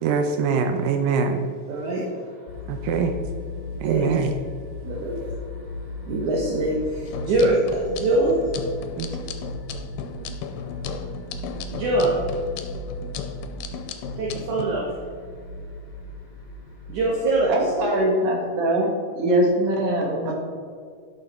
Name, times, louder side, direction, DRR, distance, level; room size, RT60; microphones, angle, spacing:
voice 1, 0.0-1.4 2.7-3.1 3.8-4.3 9.0-9.1, right 6 dB, 85° right, 6 dB, 2.4 m, -23 dB
voice 2, 1.7-2.1 3.8-4.1 4.8-5.4 6.0-8.4 11.7-12.1 14.2-14.9 16.9-17.5, right 2 dB, 65° right, -3 dB, 2.3 m, -23 dB
sound 1, 2.5-17.7, left 2 dB, 65° left, 1.2 m, -37 dB
sound 2, 7.1-14.7, left 7 dB, 85° left, 2.4 m, -36 dB
voice 3, 17.5-18.9 19.2-20.3, right 1 dB, 45° right, 0 dB, 2.5 m, -22 dB
12.0 x 6.4 x 4.3 m, 2.2 s
omnidirectional pair, 4.0 m